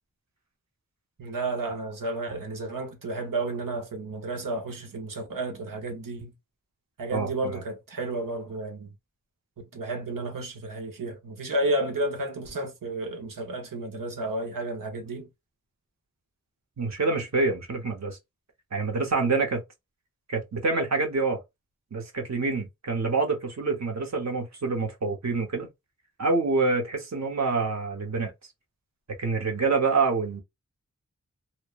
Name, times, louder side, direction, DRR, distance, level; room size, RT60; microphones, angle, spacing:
voice 1, 1.2-6.3 7.0-8.9 9.6-15.3, right 2 dB, 90° right, 0.7 m, -32 dB
voice 2, 7.1-7.6 16.8-18.2 18.7-19.6 20.3-21.4 21.9-25.7 26.2-28.3 29.2-30.4, right 3 dB, 55° right, 0.9 m, -26 dB
3.0 x 2.0 x 2.3 m
wide cardioid pair, 45°, 32 cm